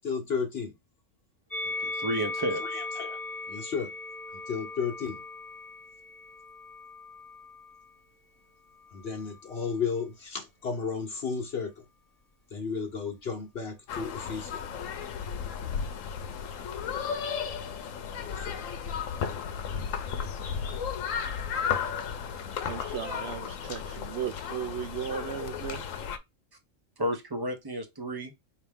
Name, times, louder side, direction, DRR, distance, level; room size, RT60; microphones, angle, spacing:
voice 1, 0.0-0.7 2.7-3.2 3.5-3.9 4.5-5.2 8.9-11.7 12.5-14.6 18.2-18.6, left 5 dB, 55° left, 1.1 m, -33 dB
Musical instrument, 1.5-7.9 8.7-9.7, left 2 dB, 15° left, 0.9 m, -39 dB
voice 2, 1.6-2.6 27.0-28.3, equal, 20° right, 0.7 m, -32 dB
sound 1, 13.9-26.2, left 7 dB, 80° left, 1.1 m, -34 dB
voice 3, 22.7-25.8, right 9 dB, 65° right, 0.7 m, -36 dB
4.5 x 2.9 x 3.5 m
omnidirectional pair, 1.3 m